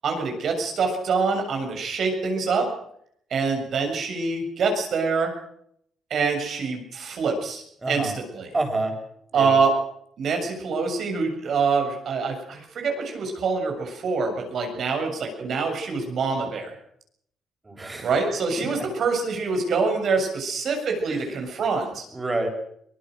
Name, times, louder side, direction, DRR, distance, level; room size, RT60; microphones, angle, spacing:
voice 1, 0.0-2.7 3.3-5.3 6.1-8.5 9.3-9.7 10.2-16.7 18.0-22.0, right 4 dB, 60° right, 4 dB, 7.1 m, -25 dB
voice 2, 7.8-8.1 8.5-9.0 9.3-9.6 17.6-18.1 18.5-18.9 21.1-21.2 22.1-22.5, right 2 dB, 20° right, 4 dB, 7.1 m, -28 dB
24.0 x 20.0 x 6.5 m, 0.69 s
cardioid pair, 90°, 0 cm